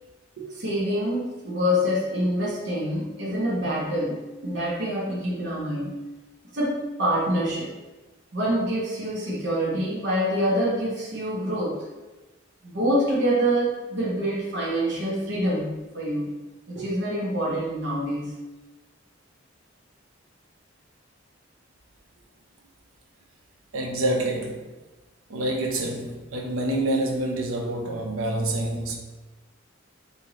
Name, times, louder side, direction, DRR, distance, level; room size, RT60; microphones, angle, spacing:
voice 1, 0.4-6.0 6.5-7.7 8.3-11.9 12.6-18.3, equal, 55° right, -5 dB, 0.8 m, -26 dB
voice 2, 23.7-24.7 25.3-28.9, right 1 dB, 90° right, 2 dB, 0.6 m, -27 dB
3.1 x 2.7 x 3.6 m, 1.1 s
head